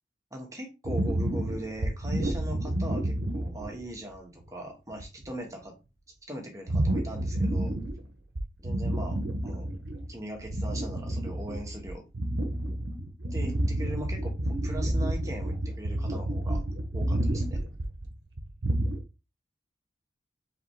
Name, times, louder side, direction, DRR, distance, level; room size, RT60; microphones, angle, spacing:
voice 1, 0.3-5.7 6.3-7.7 8.6-9.7 10.1-12.0 13.3-16.6 16.9-17.6, right 1 dB, 20° right, 2 dB, 1.3 m, -40 dB
sound 1, 0.9-3.9 4.4-4.5 4.9-5.3 6.7-8.1 8.4-10.1 10.4-19.0, right 1 dB, 65° right, 0.9 m, -30 dB
4.8 x 3.4 x 3.2 m, 0.28 s
head